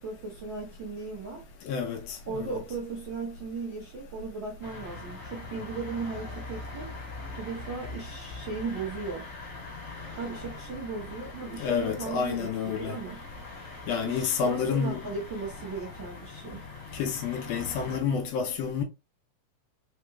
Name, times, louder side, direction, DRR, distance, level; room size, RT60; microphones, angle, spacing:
voice 1, 0.0-1.4 2.3-6.9 7.4-9.3 10.1-13.2 14.0-16.6, right 4 dB, 80° right, 1.0 m, -37 dB
voice 2, 1.6-2.4 11.6-13.0 13.9-15.0 16.9-18.8, left 6 dB, 85° left, 1.4 m, -29 dB
sound 1, 4.6-18.0, left 3 dB, 35° left, 1.3 m, -42 dB
4.9 x 3.1 x 2.2 m
omnidirectional pair, 3.7 m